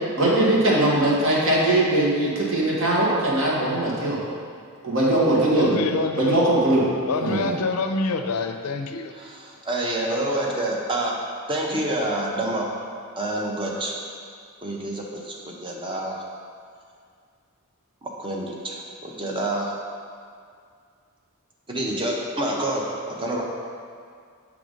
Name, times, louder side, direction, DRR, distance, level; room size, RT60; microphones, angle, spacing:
voice 1, 0.2-4.2 4.8-5.8 6.2-6.8 7.2-7.5, right 1 dB, 60° right, -5 dB, 1.3 m, -20 dB
voice 2, 5.6-6.4 7.1-9.1, left 3 dB, 75° left, 7 dB, 0.4 m, -26 dB
voice 3, 9.2-11.1 11.5-12.7 13.2-13.9 14.6-16.2 18.0-19.7 21.7-23.4, right 1 dB, 25° right, -1 dB, 0.7 m, -27 dB
6.7 x 3.5 x 5.0 m, 2.2 s
head